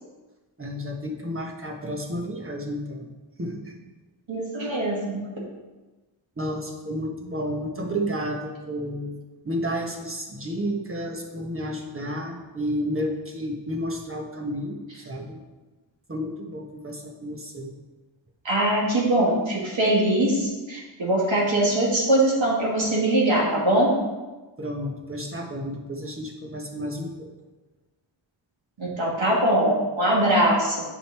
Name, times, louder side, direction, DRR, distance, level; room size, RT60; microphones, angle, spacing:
voice 1, 0.6-3.1 3.4-3.8 6.4-9.2 9.4-15.4 16.1-17.7 24.6-27.3, equal, 25° right, 1 dB, 1.3 m, -31 dB
voice 2, 4.3-5.2 18.4-23.9 28.8-30.8, right 1 dB, 70° right, -4 dB, 2.5 m, -22 dB
9.1 x 5.2 x 4.4 m, 1.2 s
wide cardioid pair, 105°, 49 cm